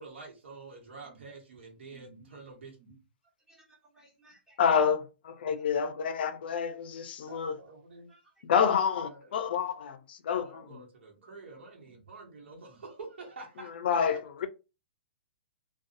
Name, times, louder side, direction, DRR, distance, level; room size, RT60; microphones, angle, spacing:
voice 1, 0.0-2.8 7.2-8.1 9.1-9.3 10.3-13.7, right 3 dB, 75° right, 1.1 m, -48 dB
voice 2, 1.9-2.4 2.8-3.0 3.5-4.6 5.5-5.6 8.1-8.2 11.8-11.9, right 3 dB, 10° right, 0.8 m, -59 dB
voice 3, 4.6-7.6 8.5-10.8 13.8-14.5, left 7 dB, 60° left, 0.5 m, -28 dB
2.6 x 2.3 x 2.5 m
hypercardioid pair, 160°, 6 cm